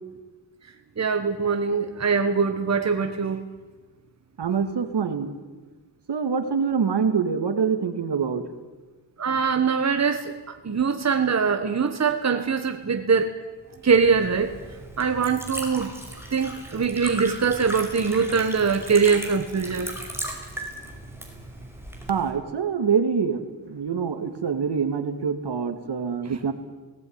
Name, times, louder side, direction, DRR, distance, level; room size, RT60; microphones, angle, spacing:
voice 1, 1.0-3.4 9.2-13.3 13.8-14.5 15.0-15.9 16.3-19.9 26.2-26.4, right 5 dB, 35° right, 7 dB, 1.5 m, -23 dB
voice 2, 4.4-5.3 6.1-8.4 22.1-23.4 23.7-26.5, right 6 dB, 65° right, 9 dB, 2.3 m, -25 dB
Liquid, 13.8-22.3, right 1 dB, 5° right, 5.3 m, -37 dB
19.0 x 18.0 x 9.7 m, 1.3 s
wide cardioid pair, 105°, 44 cm